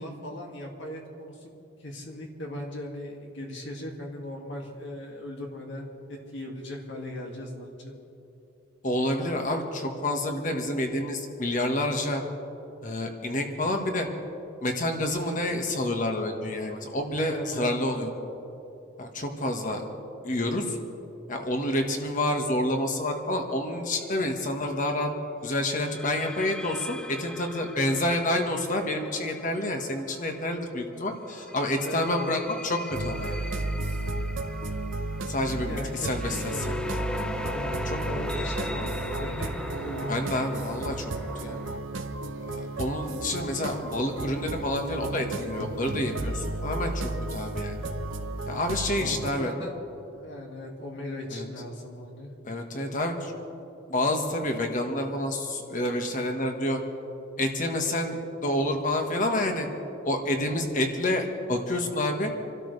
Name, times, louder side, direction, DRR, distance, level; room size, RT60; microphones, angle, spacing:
voice 1, 0.0-1.5 1.8-7.9 17.1-18.0 31.8-32.3 35.6-36.9 37.5-40.1 48.8-52.3, left 1 dB, 60° left, 0 dB, 2.2 m, -38 dB
voice 2, 8.8-12.2 12.8-14.1 14.6-18.1 19.0-19.8 20.2-20.8 21.3-25.1 25.4-33.4 35.3-36.7 37.9-38.0 40.1-41.1 41.4-41.6 42.5-47.8 48.5-49.5 51.3-51.4 52.4-53.3 53.9-56.8 57.4-59.7 60.0-62.3, left 1 dB, 40° left, 3 dB, 1.6 m, -28 dB
sound 1, 23.9-24.2 25.7-30.5 31.3-41.8, left 1 dB, 5° left, 0.5 m, -39 dB
sound 2, 32.9-49.3, right 2 dB, 70° right, 0.9 m, -33 dB
27.5 x 12.5 x 3.3 m, 2.9 s
head